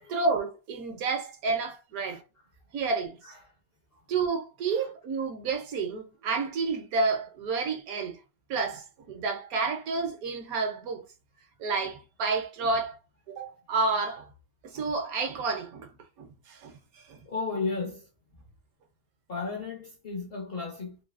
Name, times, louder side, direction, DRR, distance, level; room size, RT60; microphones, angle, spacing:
voice 1, 0.1-2.2 2.7-3.3 4.1-8.2 8.5-11.0 11.6-13.0 13.3-14.2 14.6-15.9 16.2-16.8 17.1-17.2, right 4 dB, 70° right, 1.0 m, -30 dB
voice 2, 17.2-18.0 19.3-21.0, left 4 dB, 55° left, 0.6 m, -33 dB
3.1 x 2.6 x 2.3 m
omnidirectional pair, 1.7 m